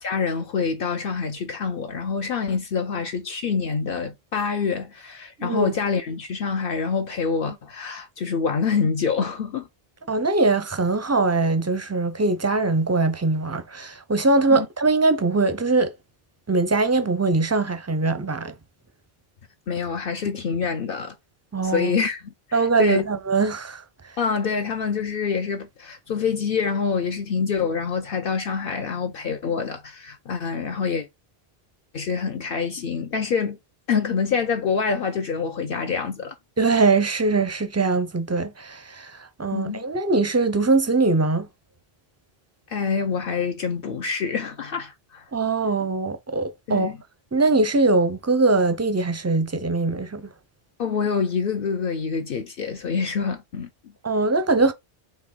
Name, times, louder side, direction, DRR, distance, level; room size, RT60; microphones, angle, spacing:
voice 1, 0.0-9.7 14.5-14.7 19.7-21.1 21.6-22.2 22.5-23.0 24.2-31.1 31.9-33.6 33.9-36.3 39.5-39.8 42.7-45.2 46.7-47.0 50.8-53.9, left 5 dB, 65° left, 0.8 m, -26 dB
voice 2, 5.4-5.7 10.1-15.9 16.5-18.5 21.5-21.9 22.5-23.8 36.6-41.5 45.3-46.9 47.3-50.3 54.0-54.7, right 3 dB, 20° right, 0.4 m, -22 dB
4.4 x 3.0 x 3.7 m
omnidirectional pair, 1.0 m